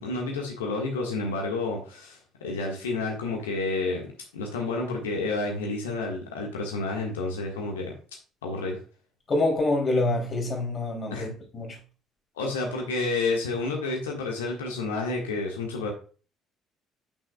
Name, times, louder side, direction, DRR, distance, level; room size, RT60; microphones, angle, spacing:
voice 1, 0.0-7.9 8.4-8.8 11.1-11.3 12.4-15.9, left 3 dB, 75° left, 1.5 m, -30 dB
voice 2, 9.3-11.8, left 2 dB, 35° left, 2.8 m, -26 dB
9.1 x 6.1 x 2.3 m
figure-of-eight pair, 50°, 0 cm